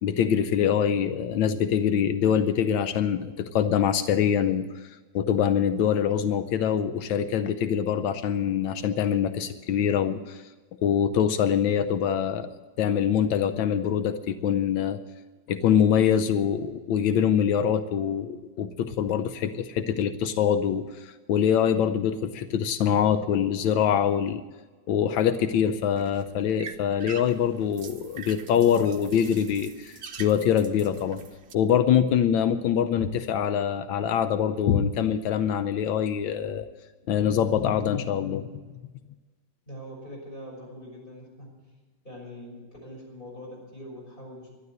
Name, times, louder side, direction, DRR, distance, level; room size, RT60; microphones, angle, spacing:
voice 1, 0.0-10.4 10.8-12.5 12.8-15.0 15.5-24.4 24.9-31.2 31.5-36.7 37.1-38.5, left 8 dB, 90° left, 10 dB, 1.4 m, -24 dB
sound 1, 25.3-31.5, right 6 dB, 50° right, 0.8 m, -45 dB
voice 2, 39.7-41.5 42.0-44.5, equal, 25° left, -3 dB, 6.3 m, -43 dB
12.0 x 12.0 x 7.9 m, 1.3 s
omnidirectional pair, 2.0 m